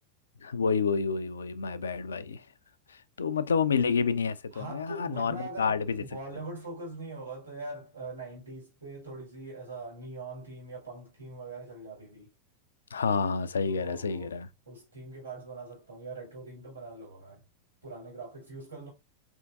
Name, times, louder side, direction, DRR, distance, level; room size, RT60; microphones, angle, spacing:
voice 1, 0.4-2.4 3.2-6.0 12.9-14.5, left 5 dB, 70° left, 0.4 m, -29 dB
voice 2, 4.5-12.3 13.6-14.3 14.7-17.4 17.8-18.9, right 2 dB, 75° right, 2.1 m, -42 dB
4.4 x 3.5 x 2.5 m
figure-of-eight pair, 90°, 0 cm